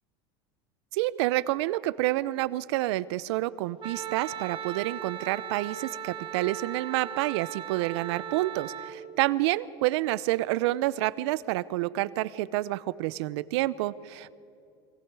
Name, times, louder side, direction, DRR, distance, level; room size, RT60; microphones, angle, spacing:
voice 1, 0.9-14.4, right 17 dB, 75° right, 18 dB, 0.7 m, -28 dB
Wind instrument woodwind instrument, 3.8-9.0, right 9 dB, 35° right, 1.5 m, -38 dB
29.5 x 23.5 x 4.8 m, 2.6 s
supercardioid pair, 100°, 14 cm